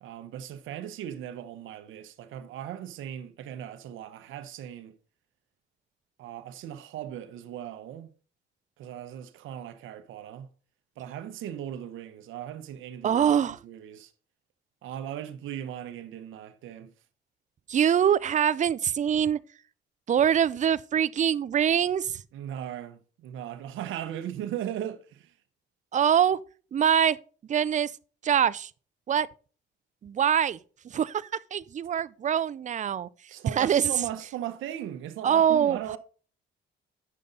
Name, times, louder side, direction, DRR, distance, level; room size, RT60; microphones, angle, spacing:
voice 1, 0.0-5.0 6.2-8.1 8.8-10.5 11.0-14.1 14.8-16.9 22.3-25.3 33.3-36.0, right 11 dB, 85° right, 0.8 m, -38 dB
voice 2, 13.0-13.6 17.7-19.4 20.1-22.2 25.9-26.4 26.7-27.2 27.5-27.9 28.2-28.7 29.1-29.3 30.0-30.6 30.8-33.1 33.6-33.9 35.2-35.8, right 9 dB, 40° right, 0.5 m, -24 dB
8.5 x 6.6 x 3.9 m
cardioid pair, 90°, 20 cm